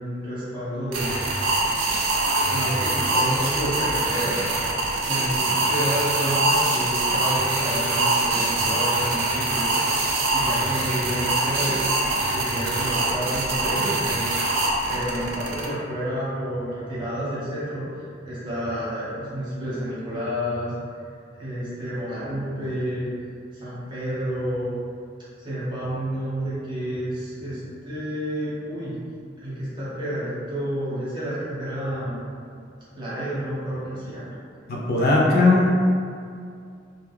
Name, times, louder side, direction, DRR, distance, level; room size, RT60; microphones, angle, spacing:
voice 1, 0.0-1.7 2.5-4.4 5.0-9.8 10.3-11.8 12.3-14.2 14.9-20.7 21.4-23.1 23.5-24.8 25.4-29.0 29.4-32.3 32.9-34.3 35.0-35.5, equal, 25° right, -11 dB, 0.9 m, -30 dB
sound 1, 0.9-15.7, right 2 dB, 80° right, 0.4 m, -24 dB
voice 2, 34.7-35.7, left 2 dB, 55° left, -3 dB, 0.4 m, -18 dB
2.2 x 2.1 x 3.1 m, 2.3 s
head